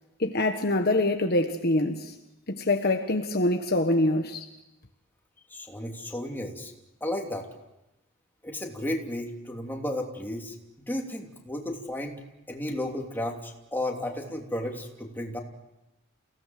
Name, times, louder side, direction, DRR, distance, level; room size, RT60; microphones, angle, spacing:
voice 1, 0.2-2.1 2.5-4.4, left 2 dB, 45° left, 1.5 m, -25 dB
voice 2, 5.5-6.7 7.0-7.5 8.4-10.5 10.9-12.2 12.5-15.4, left 1 dB, 10° left, 3.0 m, -33 dB
29.0 x 17.5 x 7.7 m
head